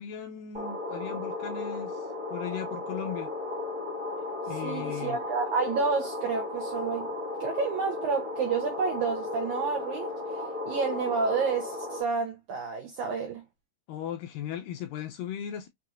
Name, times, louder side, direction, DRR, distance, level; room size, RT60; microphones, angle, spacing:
voice 1, 0.0-3.3 4.5-5.2 13.9-15.7, left 9 dB, 80° left, 2.0 m, -37 dB
sound 1, 0.5-12.0, left 2 dB, 40° right, 0.4 m, -35 dB
voice 2, 4.6-7.1 7.4-13.4, right 5 dB, 80° right, 1.7 m, -30 dB
6.0 x 2.8 x 2.4 m
omnidirectional pair, 4.5 m